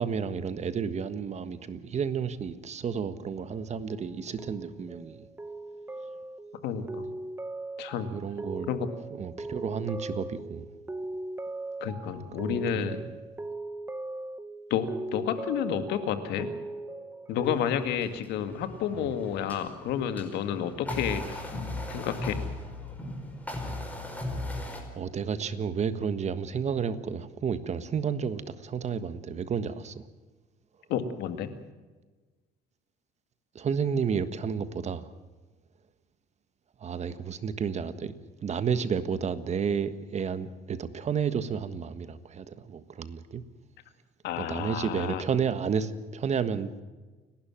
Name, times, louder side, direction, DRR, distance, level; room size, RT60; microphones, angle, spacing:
voice 1, 0.0-5.3 8.1-8.7 9.1-10.7 12.4-13.1 19.0-19.1 24.9-30.0 33.5-35.1 36.8-38.1 38.4-43.4 44.4-46.7, right 6 dB, 40° right, 12 dB, 1.5 m, -31 dB
sound 1, 3.4-4.0 4.4-17.5, right 2 dB, 15° right, 1.2 m, -39 dB
voice 2, 6.6-7.1 7.8-8.1 8.7-8.9 11.8-13.0 14.7-16.5 17.3-21.5 21.9-22.4 30.9-31.5 44.2-45.2, left 8 dB, 85° left, 9 dB, 2.1 m, -30 dB
sound 2, 17.4-24.8, left 2 dB, 10° left, 4.9 m, -38 dB
29.0 x 12.0 x 7.5 m, 1.3 s
cardioid pair, 110°, 17 cm